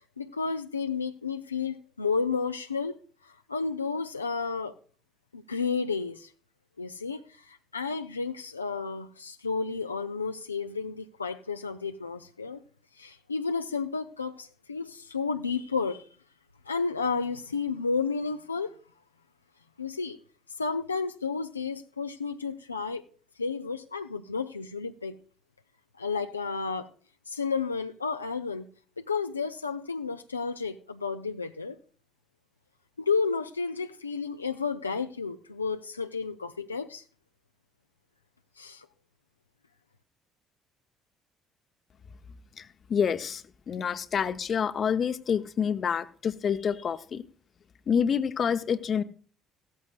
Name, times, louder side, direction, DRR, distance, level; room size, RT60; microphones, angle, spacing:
voice 1, 0.2-3.0 3.2-4.7 5.3-6.3 6.8-12.6 13.0-16.1 16.7-18.7 19.8-20.2 20.6-23.0 23.4-25.2 26.0-26.9 27.3-28.7 29.1-31.8 33.0-37.0 38.6-38.9, left 5 dB, 85° left, 6 dB, 0.4 m, -32 dB
voice 2, 42.6-47.2 47.9-49.0, left 7 dB, 40° left, 12 dB, 0.8 m, -28 dB
16.0 x 13.5 x 2.4 m, 0.42 s
figure-of-eight pair, 50°, 0 cm